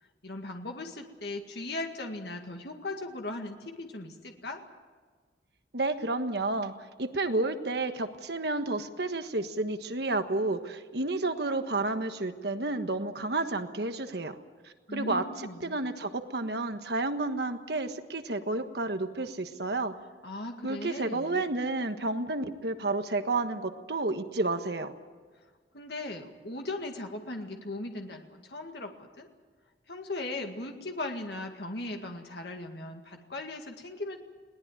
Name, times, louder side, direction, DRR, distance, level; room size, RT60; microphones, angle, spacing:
voice 1, 0.2-4.6 14.9-15.8 20.2-21.4 25.7-29.3 29.9-34.2, left 2 dB, 60° left, 3 dB, 2.0 m, -38 dB
voice 2, 5.7-14.4 14.6-15.2 15.6-19.9 20.6-24.9, right 2 dB, 60° right, 8 dB, 1.4 m, -31 dB
21.5 x 18.5 x 9.2 m, 1.4 s
head